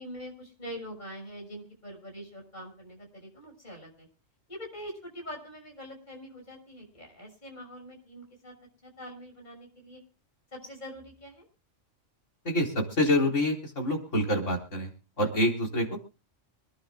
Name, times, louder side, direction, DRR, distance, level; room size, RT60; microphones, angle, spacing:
voice 1, 0.0-4.1 4.5-8.5 8.8-10.0 10.5-11.5 15.2-15.3, equal, 35° left, 1 dB, 6.7 m, -44 dB
voice 2, 12.4-14.9 15.2-16.0, left 1 dB, 65° left, 0 dB, 4.3 m, -26 dB
26.5 x 11.5 x 2.3 m, 0.34 s
omnidirectional pair, 1.4 m